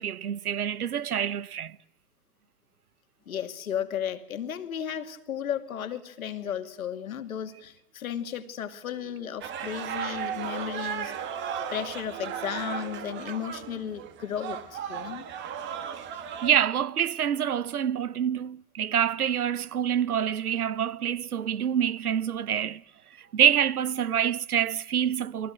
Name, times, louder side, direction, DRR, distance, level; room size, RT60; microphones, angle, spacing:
voice 1, 0.0-1.8 16.0-16.1 16.4-22.8 23.2-25.5, right 9 dB, 70° right, 1.0 m, -26 dB
voice 2, 3.3-11.1 11.7-15.2, left 9 dB, 60° left, 2.4 m, -34 dB
sound 1, 9.4-16.6, right 8 dB, 25° right, 2.1 m, -35 dB
29.5 x 22.5 x 8.0 m
figure-of-eight pair, 120°, 47 cm